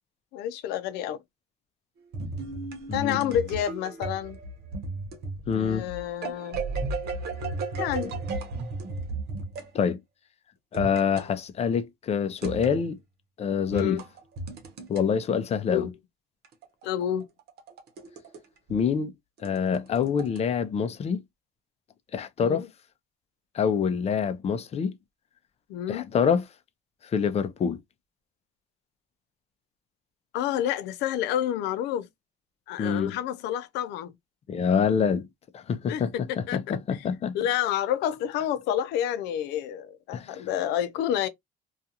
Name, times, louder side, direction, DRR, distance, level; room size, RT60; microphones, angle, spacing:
voice 1, 0.3-1.2 2.9-4.4 5.5-6.6 7.8-8.2 13.7-14.0 15.7-15.9 16.8-17.3 22.4-22.7 25.7-26.1 30.3-32.1 32.7-34.1 35.9-37.0 37.3-41.3, left 11 dB, 90° left, 0.5 m, -29 dB
sound 1, 2.1-9.7 10.7-11.3 12.4-12.9 13.7-15.0 16.4-18.4 18.7-18.8 19.4-20.4, right 3 dB, 70° right, 0.8 m, -35 dB
voice 2, 2.9-3.3 5.5-5.9 9.7-10.0 10.7-13.0 13.4-14.0 14.9-15.9 18.7-19.1 19.4-21.2 22.1-22.7 23.5-24.9 25.9-26.5 27.1-27.8 32.8-33.1 34.5-35.3 35.5-37.4 40.1-40.4, left 6 dB, 40° left, 0.5 m, -26 dB
2.4 x 2.4 x 2.7 m
cardioid pair, 110°, 17 cm